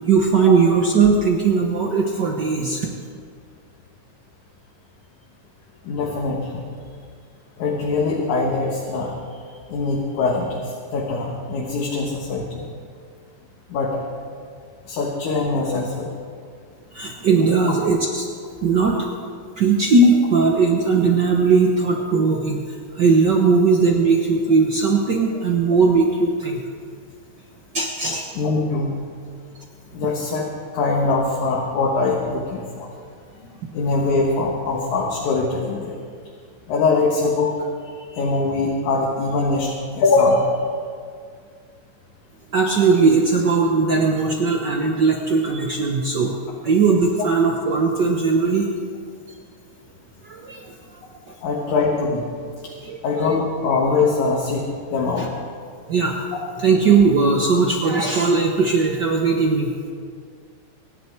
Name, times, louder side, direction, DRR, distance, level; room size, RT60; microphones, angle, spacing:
voice 1, 0.0-2.9 16.9-18.3 18.6-19.0 19.6-22.6 22.9-26.6 27.7-28.2 42.5-46.3 46.6-48.7 50.2-50.7 52.8-53.2 55.2-55.3 55.9-56.2 56.6-59.7, right 4 dB, 75° right, 1 dB, 0.9 m, -18 dB
voice 2, 5.8-6.6 7.6-9.1 9.7-12.7 13.7-14.0 14.9-16.1 28.4-29.0 29.9-30.5 30.7-32.9 33.4-36.0 36.7-37.5 38.0-40.5 51.4-52.3 53.0-54.7 54.9-55.3, left 3 dB, 70° left, -2 dB, 2.8 m, -22 dB
25.0 x 10.5 x 4.6 m, 2.1 s
omnidirectional pair, 3.7 m